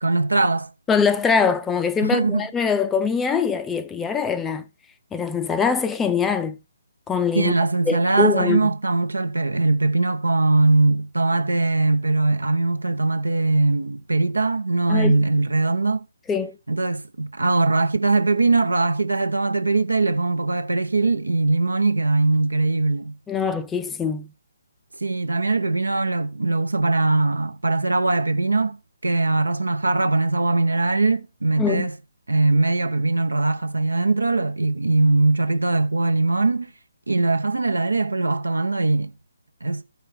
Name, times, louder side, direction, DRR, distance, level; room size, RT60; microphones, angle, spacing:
voice 1, 0.0-0.7 2.0-2.5 7.3-16.0 16.7-23.2 25.0-28.8 29.0-32.0 32.3-36.7 37.1-39.1 39.6-39.8, right 3 dB, 75° right, 0.9 m, -21 dB
voice 2, 0.9-4.6 5.1-6.6 7.1-7.6 7.9-8.7 14.9-15.2 16.3-16.5 23.3-24.3 31.6-31.9, left 6 dB, 10° left, 0.5 m, -23 dB
14.0 x 5.3 x 3.7 m
figure-of-eight pair, 140°, 0 cm